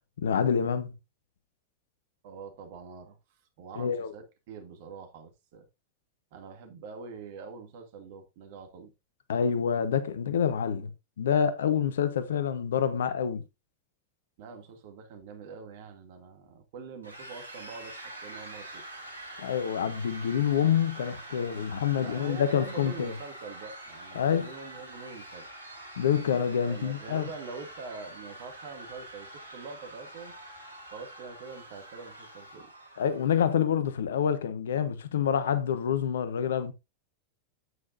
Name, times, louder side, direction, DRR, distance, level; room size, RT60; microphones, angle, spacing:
voice 1, 0.2-0.9 3.8-4.1 9.3-10.9 11.2-13.4 19.4-23.1 24.1-24.5 26.0-27.3 33.0-36.7, left 8 dB, 65° left, 1.1 m, -27 dB
voice 2, 2.2-5.7 6.3-8.9 14.4-18.8 21.9-25.5 26.7-30.3 30.9-32.7, right 5 dB, 50° right, 2.4 m, -44 dB
sound 1, 17.0-33.3, right 1 dB, 80° right, 3.2 m, -45 dB
9.5 x 8.7 x 2.6 m
figure-of-eight pair, 90°, 0 cm